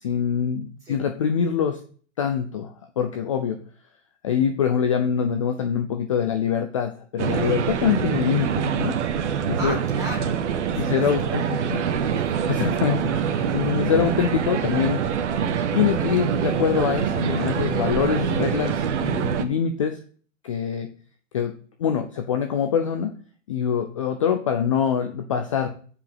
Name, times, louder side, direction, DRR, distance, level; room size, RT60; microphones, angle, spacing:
voice 1, 0.0-1.8 2.2-3.6 4.2-9.0 9.5-9.8 10.8-11.4 11.7-11.8 12.5-15.0 15.7-20.0 20.4-20.9 21.3-21.5 21.8-23.1 23.5-25.7, left 8 dB, 25° left, 6 dB, 0.5 m, -24 dB
sound 1, 7.2-19.4, right 8 dB, 65° right, 1.3 m, -25 dB
voice 2, 9.6-10.4 10.7-12.5, right 1 dB, 10° right, 0 dB, 1.5 m, -36 dB
8.4 x 5.1 x 7.3 m, 0.43 s
supercardioid pair, 180°, 37 cm